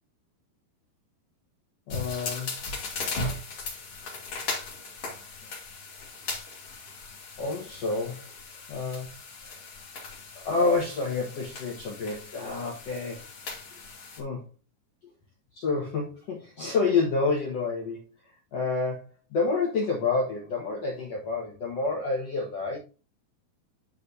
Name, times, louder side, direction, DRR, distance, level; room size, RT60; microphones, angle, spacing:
voice 1, 1.9-2.5 7.4-8.2 8.7-9.1 9.5-9.6 10.4-13.3 14.2-14.4 15.5-22.8, left 4 dB, 65° left, -2 dB, 1.6 m, -29 dB
sound 1, 1.9-14.2, left 3 dB, 45° left, 2.5 m, -38 dB
10.5 x 5.0 x 2.7 m, 0.32 s
omnidirectional pair, 5.0 m